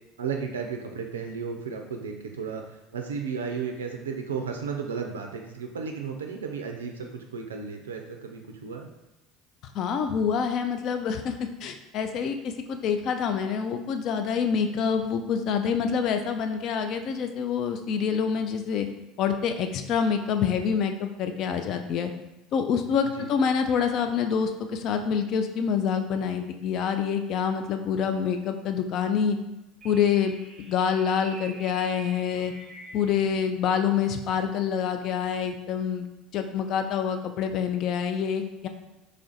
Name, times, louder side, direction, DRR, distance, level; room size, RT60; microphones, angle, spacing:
voice 1, 0.2-8.9 23.2-23.3, right 5 dB, 90° right, 3 dB, 0.3 m, -34 dB
voice 2, 9.7-18.9 19.2-22.1 22.5-29.4 29.8-32.5 32.9-36.1 36.3-38.7, left 7 dB, 55° left, 7 dB, 0.4 m, -26 dB
sound 1, 29.8-33.3, right 3 dB, 20° right, 0.8 m, -45 dB
3.2 x 2.5 x 3.8 m, 0.97 s
hypercardioid pair, 75°, 0 cm